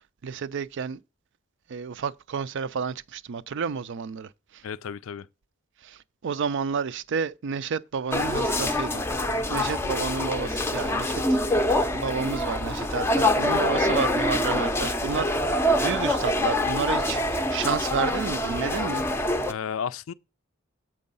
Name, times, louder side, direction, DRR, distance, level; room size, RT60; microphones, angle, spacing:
voice 1, 0.2-1.0 1.7-4.6 5.8-9.0 9.5-11.2 11.5-11.6 11.9-19.1, right 6 dB, 60° right, 0.4 m, -31 dB
voice 2, 4.6-5.3 19.5-20.1, left 7 dB, 75° left, 0.4 m, -33 dB
sound 1, 8.1-19.5, left 1 dB, 10° left, 0.5 m, -25 dB
7.5 x 4.7 x 5.4 m
head